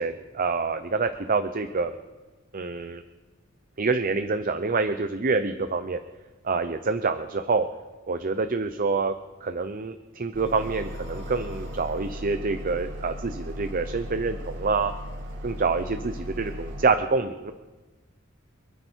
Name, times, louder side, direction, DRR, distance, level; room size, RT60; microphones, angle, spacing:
voice 1, 0.0-1.9 2.5-3.0 3.8-6.0 6.4-7.7 8.1-9.1 9.4-14.9 15.4-17.5, right 4 dB, 45° right, 9 dB, 0.7 m, -26 dB
sound 1, 10.3-16.9, equal, 60° right, 2.4 m, -37 dB
27.0 x 10.0 x 4.6 m, 1.2 s
head